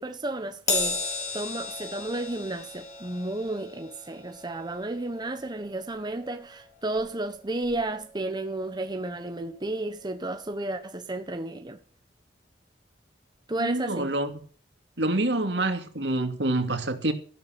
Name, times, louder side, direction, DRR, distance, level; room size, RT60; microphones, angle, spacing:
voice 1, 0.0-11.8 13.5-14.1, right 2 dB, 25° right, 1.1 m, -32 dB
Crash cymbal, 0.7-7.3 7.6-7.9 8.9-9.0, left 3 dB, 40° left, 4.4 m, -35 dB
voice 2, 13.6-14.3 15.0-17.1, right 2 dB, 70° right, 2.6 m, -26 dB
14.5 x 12.0 x 6.0 m
head